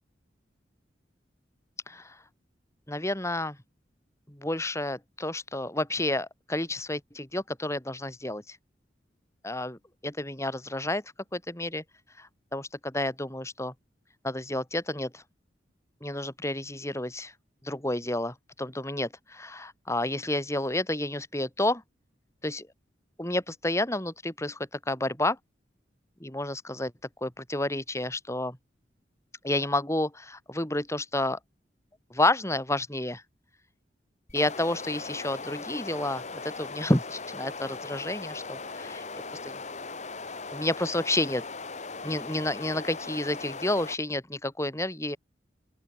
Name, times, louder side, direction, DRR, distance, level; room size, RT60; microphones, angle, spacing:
voice 1, 1.9-2.2 2.9-3.6 4.3-8.6 9.4-11.0 11.3-11.8 12.2-13.7 14.2-15.2 16.0-17.3 17.6-21.8 22.4-22.7 23.2-25.4 26.2-26.9 27.2-28.6 29.4-31.4 32.1-33.2 34.3-39.0 39.4-39.5 40.5-41.4 42.0-45.2, left 1 dB, 15° left, 5.2 m, -30 dB
sound 1, 34.3-44.0, left 4 dB, 40° left, 2.5 m, -39 dB
open air
head